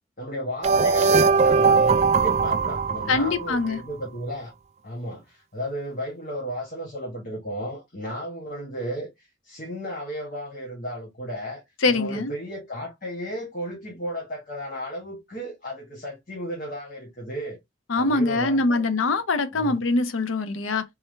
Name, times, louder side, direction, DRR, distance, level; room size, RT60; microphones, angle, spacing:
voice 1, 0.2-4.5 4.8-17.6 17.9-18.9 19.5-19.8, equal, 45° left, 1.3 m, -34 dB
sound 1, 0.6-3.7, right 4 dB, 35° right, 0.3 m, -20 dB
voice 2, 3.1-3.8 11.8-12.3 17.9-20.8, left 3 dB, 85° left, 0.7 m, -23 dB
3.4 x 3.3 x 3.1 m
head